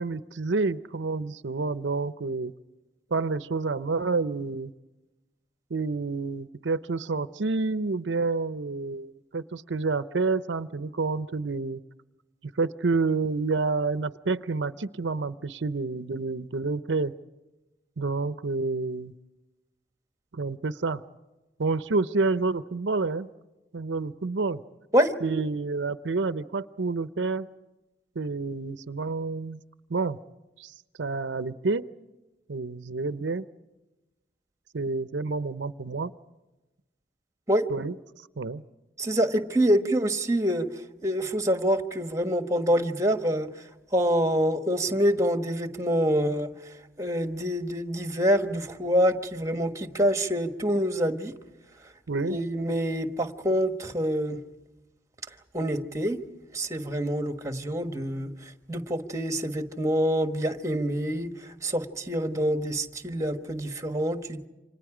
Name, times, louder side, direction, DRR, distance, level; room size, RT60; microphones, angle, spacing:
voice 1, 0.0-2.5 3.1-4.7 5.7-11.8 12.6-17.1 18.0-19.1 20.3-21.0 21.6-23.3 23.7-24.6 25.2-27.5 28.2-29.6 29.9-30.2 30.6-30.7 31.0-31.9 32.5-33.5 34.7-36.1 37.7-37.9 38.4-38.6 52.1-52.4, right 3 dB, 85° right, 13 dB, 0.7 m, -28 dB
voice 2, 39.0-40.7 41.0-43.5 43.9-46.5 47.0-51.4 52.3-54.4 55.5-56.2 56.5-58.3 58.7-61.3 61.6-64.5, equal, 15° right, 8 dB, 1.3 m, -26 dB
29.0 x 26.0 x 5.0 m, 1.1 s
head